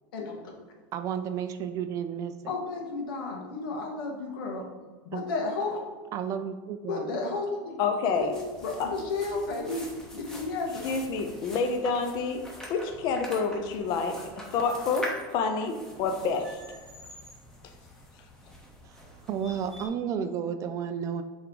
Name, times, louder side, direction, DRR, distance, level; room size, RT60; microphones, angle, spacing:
voice 1, 0.9-2.6 5.1-5.2 6.1-7.2 18.8-19.0 19.3-21.2, right 8 dB, 30° right, 9 dB, 0.3 m, -32 dB
voice 2, 2.5-4.6 5.1-5.8 6.9-7.8 8.2-8.3 8.6-9.9 10.1-10.8, left 3 dB, 90° left, 0 dB, 1.6 m, -32 dB
voice 3, 7.8-8.3 8.8-8.9 10.8-12.4 12.7-14.2 14.5-16.6, left 4 dB, 35° left, 5 dB, 0.6 m, -28 dB
sound 1, 8.1-19.9, equal, 5° left, 0.9 m, -44 dB
7.7 x 3.5 x 3.9 m, 1.4 s
supercardioid pair, 165°, 12 cm